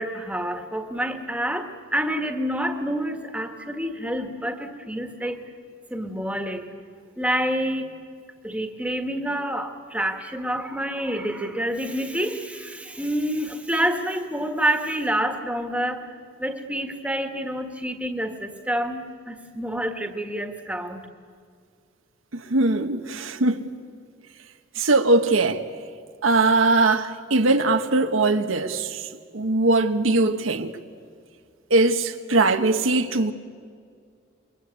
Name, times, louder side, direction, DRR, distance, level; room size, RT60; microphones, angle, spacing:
voice 1, 0.0-5.4 5.9-6.7 7.2-7.9 8.4-16.1 16.4-21.1, equal, 5° right, 1.6 m, -28 dB
voice 2, 22.3-23.7 24.8-25.6 26.2-30.7 31.7-33.3, right 2 dB, 85° right, 1.4 m, -21 dB
28.0 x 23.0 x 8.3 m
head